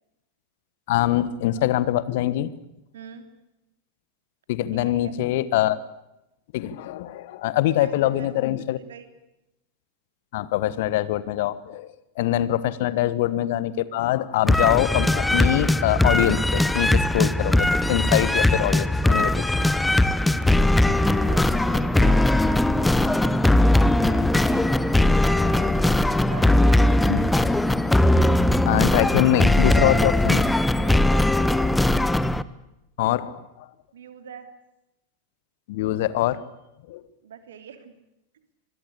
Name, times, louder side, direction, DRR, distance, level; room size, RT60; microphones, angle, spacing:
voice 1, 0.9-2.5 4.5-5.8 6.5-8.8 10.3-19.3 27.1-27.2 28.6-30.5 33.0-33.6 35.7-36.4 36.9-37.0, left 14 dB, 50° left, 17 dB, 1.4 m, -24 dB
voice 2, 2.9-3.3 4.7-5.1 7.7-8.3 8.7-9.1 21.1-25.7 26.3-27.3 30.8-31.8 33.9-34.5 37.2-37.9 38.3-38.4, right 8 dB, 60° right, 8 dB, 3.3 m, -43 dB
sound 1, 14.5-32.4, left 1 dB, 5° left, 1.0 m, -20 dB
25.5 x 21.5 x 8.5 m, 0.90 s
figure-of-eight pair, 90°, 0 cm